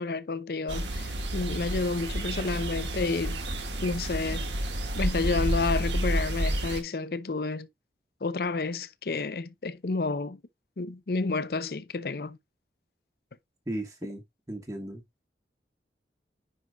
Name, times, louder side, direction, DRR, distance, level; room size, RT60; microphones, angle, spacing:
voice 1, 0.0-3.4 3.8-4.5 4.9-7.7 8.2-10.4 10.8-12.4, left 3 dB, 60° left, 0.6 m, -30 dB
sound 1, 0.7-6.8, right 1 dB, 90° right, 1.7 m, -30 dB
voice 2, 13.7-15.0, right 1 dB, 20° right, 1.1 m, -36 dB
9.8 x 4.7 x 2.3 m
head